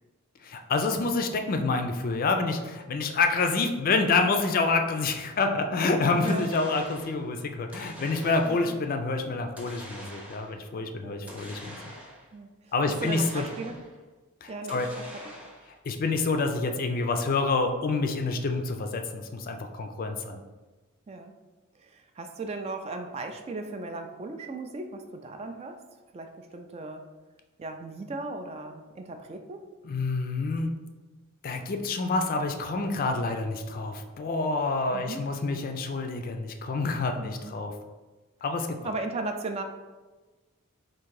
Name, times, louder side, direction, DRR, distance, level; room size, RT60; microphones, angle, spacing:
voice 1, 0.4-11.8 12.7-13.4 14.4-14.9 15.9-20.4 29.8-30.7 31.4-37.7 38.4-38.8, left 3 dB, 45° left, 5 dB, 0.4 m, -27 dB
voice 2, 6.2-6.5 8.4-8.7 11.0-11.3 12.3-12.7 13.0-13.8 14.5-15.1 21.1-21.3 21.8-25.8 26.1-27.0 27.6-29.6 34.9-35.3 37.2-37.5 38.8-39.6, right 3 dB, 30° right, 6 dB, 0.3 m, -37 dB
sound 1, 6.3-7.2 7.7-8.8 9.6-10.6 11.3-12.3 12.9-14.0 14.7-15.8, equal, 5° right, 0.7 m, -45 dB
3.7 x 2.5 x 4.6 m, 1.2 s
head